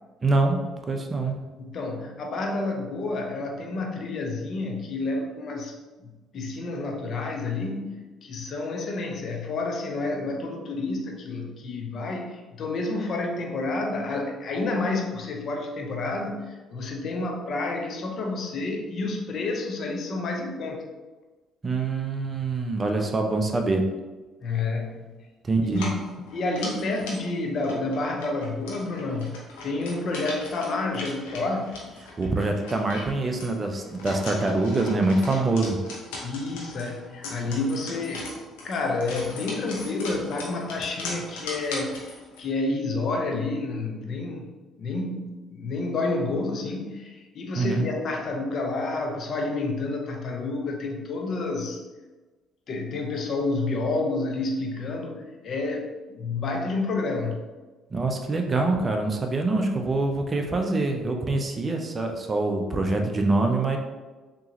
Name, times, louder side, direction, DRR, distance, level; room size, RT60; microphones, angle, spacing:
voice 1, 0.2-0.6 0.9-1.4 21.6-23.8 25.4-25.9 32.2-35.8 47.6-47.9 57.9-63.8, right 2 dB, 35° right, 4 dB, 0.6 m, -25 dB
voice 2, 1.6-5.7 6.3-7.9 8.2-20.8 24.4-25.1 25.6-31.7 36.2-38.3 38.6-44.5 44.8-51.8 52.7-57.4, left 3 dB, 55° left, 2 dB, 0.7 m, -29 dB
sound 1, 25.7-42.5, left 2 dB, 90° left, 0.8 m, -39 dB
3.7 x 2.9 x 2.9 m, 1.2 s
supercardioid pair, 70°, 0 cm